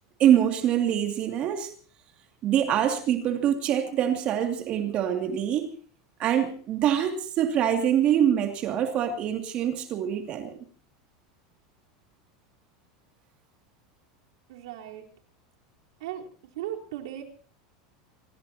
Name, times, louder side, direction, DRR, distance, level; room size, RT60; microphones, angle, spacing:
voice 1, 0.2-1.7 2.4-5.7 6.2-10.6, right 10 dB, 40° right, 2.5 m, -24 dB
voice 2, 14.5-15.1 16.0-16.2 16.6-17.2, right 12 dB, 80° right, 4.1 m, -36 dB
25.5 x 19.0 x 2.9 m
supercardioid pair, 130°, 3 cm